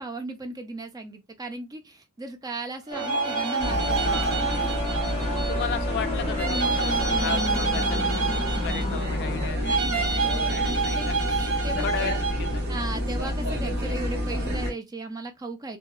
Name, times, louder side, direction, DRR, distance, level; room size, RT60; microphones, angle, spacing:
voice 1, 0.0-4.8 9.6-12.1 12.7-15.8, right 2 dB, 15° right, 0.4 m, -36 dB
sound 1, 2.9-9.5, left 1 dB, 30° left, 0.8 m, -32 dB
sound 2, 2.9-5.7 6.3-9.1 9.6-12.6, right 4 dB, 75° right, 0.7 m, -28 dB
sound 3, 3.6-14.7, equal, 45° right, 1.0 m, -29 dB
voice 2, 4.0-4.5 5.3-8.3 8.6-10.1 10.8-12.1 12.4-12.7, left 8 dB, 50° left, 0.3 m, -35 dB
2.7 x 2.3 x 2.2 m
head